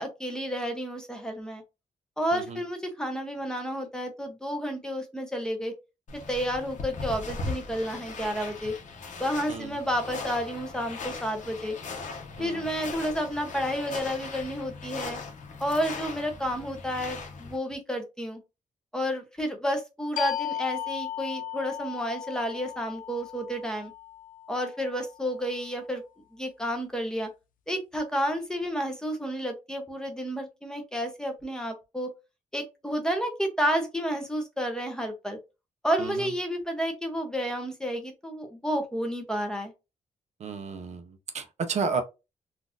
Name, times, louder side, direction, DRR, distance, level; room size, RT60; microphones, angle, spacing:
voice 1, 0.0-1.6 2.2-5.7 6.1-8.7 9.2-11.8 12.4-15.2 15.6-18.4 18.9-23.9 24.5-26.0 26.3-27.3 27.7-32.1 32.5-35.4 35.8-39.7, equal, 5° left, 0.7 m, -31 dB
sound 1, 6.1-17.6, left 4 dB, 65° left, 0.9 m, -39 dB
sound 2, 20.2-25.5, left 11 dB, 90° left, 0.4 m, -36 dB
voice 2, 40.4-42.0, right 5 dB, 60° right, 0.6 m, -32 dB
3.8 x 2.5 x 2.5 m
wide cardioid pair, 155°, 13 cm